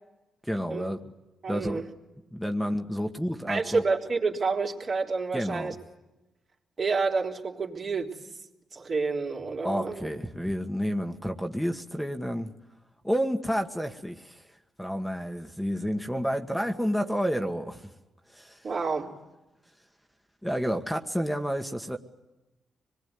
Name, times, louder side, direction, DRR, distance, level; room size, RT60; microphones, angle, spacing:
voice 1, 0.5-1.0 1.5-1.8 2.3-3.8 5.3-5.7 9.6-12.5 13.0-14.4 14.8-17.9 18.3-18.6 20.4-22.0, equal, ahead, 4 dB, 1.6 m, -30 dB
voice 2, 1.4-1.9 3.5-5.8 6.8-8.2 8.7-10.1 18.6-19.1, right 4 dB, 50° right, 0 dB, 3.5 m, -29 dB
25.5 x 21.0 x 9.5 m, 1.1 s
cardioid pair, 70°, 0 cm